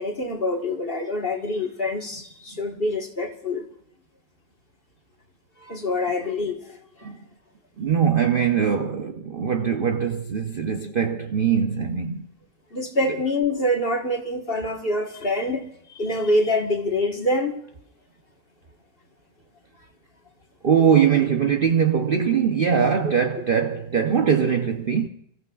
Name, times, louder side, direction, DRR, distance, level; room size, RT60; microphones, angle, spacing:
voice 1, 0.0-3.6 5.6-7.1 12.7-17.6 20.9-21.0, left 1 dB, 35° left, 1.5 m, -26 dB
voice 2, 7.8-12.3 20.6-25.1, right 7 dB, 65° right, 0.5 m, -21 dB
29.5 x 15.0 x 2.4 m
omnidirectional pair, 2.0 m